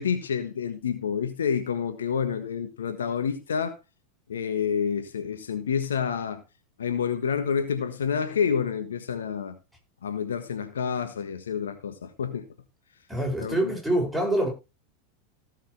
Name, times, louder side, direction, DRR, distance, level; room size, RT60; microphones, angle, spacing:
voice 1, 0.0-3.7 4.3-6.4 6.8-9.6 10.0-12.4 13.4-13.7, left 7 dB, 70° left, 1.4 m, -28 dB
voice 2, 13.1-14.5, right 1 dB, ahead, 6.7 m, -25 dB
17.0 x 6.6 x 3.3 m
figure-of-eight pair, 85°, 0 cm